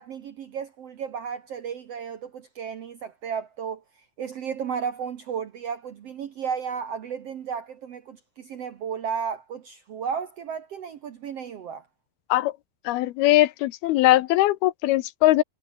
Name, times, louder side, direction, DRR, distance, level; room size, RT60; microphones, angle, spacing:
voice 1, 0.0-3.8 4.2-11.9, right 7 dB, 65° right, 1.6 m, -33 dB
voice 2, 12.9-15.4, left 17 dB, 85° left, 2.8 m, -20 dB
omnidirectional pair, 4.4 m